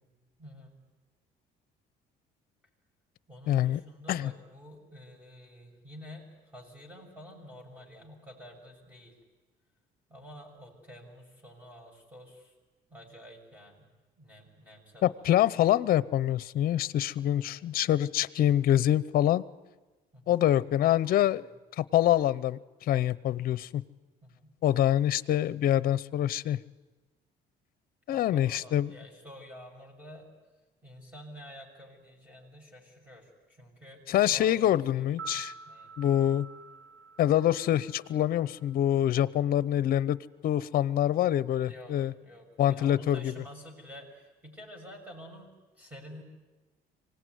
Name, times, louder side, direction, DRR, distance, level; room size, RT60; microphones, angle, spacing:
voice 1, 0.4-0.8 3.3-9.2 10.1-12.5 12.9-13.9 14.2-15.3 16.7-16.9 17.3-17.6 20.1-20.4 23.6-23.9 24.2-24.5 28.1-30.3 30.8-34.7 34.9-35.9 41.7-46.2, equal, 10° right, 1 dB, 6.7 m, -49 dB
voice 2, 3.5-3.8 4.1-4.3 15.0-19.4 20.3-21.4 21.8-23.8 24.6-26.6 28.1-28.9 34.1-35.5 36.0-36.5 37.2-40.2 40.4-42.1 42.6-43.3, left 12 dB, 60° left, 17 dB, 0.7 m, -25 dB
sound 1, 35.0-39.2 39.5-39.6, right 6 dB, 85° right, 1.4 m, -47 dB
25.0 x 18.5 x 9.4 m, 1.2 s
cardioid pair, 110°, 17 cm